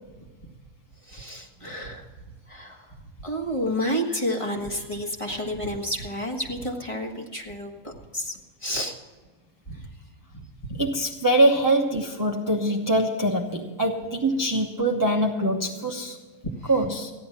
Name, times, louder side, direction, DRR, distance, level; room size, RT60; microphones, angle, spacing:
voice 1, 0.2-0.6 1.0-2.1 2.5-8.9 9.7-9.9 10.6-10.8 16.4-16.8, equal, 25° left, 1 dB, 1.5 m, -31 dB
voice 2, 10.8-16.2 16.7-17.1, right 1 dB, 20° right, 0 dB, 0.7 m, -23 dB
14.5 x 10.5 x 5.8 m, 1.4 s
omnidirectional pair, 1.5 m